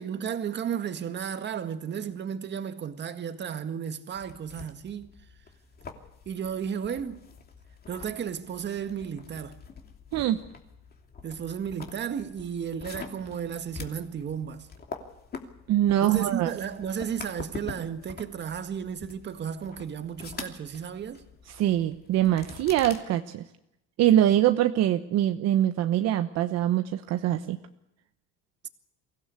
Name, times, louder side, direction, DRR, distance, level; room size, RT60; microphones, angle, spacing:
voice 1, 0.0-5.1 6.3-7.2 7.9-9.6 11.2-14.7 16.0-21.2, right 8 dB, 35° right, 1.9 m, -33 dB
sound 1, 4.1-23.0, left 5 dB, 30° left, 2.9 m, -45 dB
voice 2, 15.7-16.5 21.5-23.4 24.0-27.6, right 12 dB, 60° right, 1.0 m, -23 dB
23.5 x 16.5 x 8.3 m
cardioid pair, 135°, 30 cm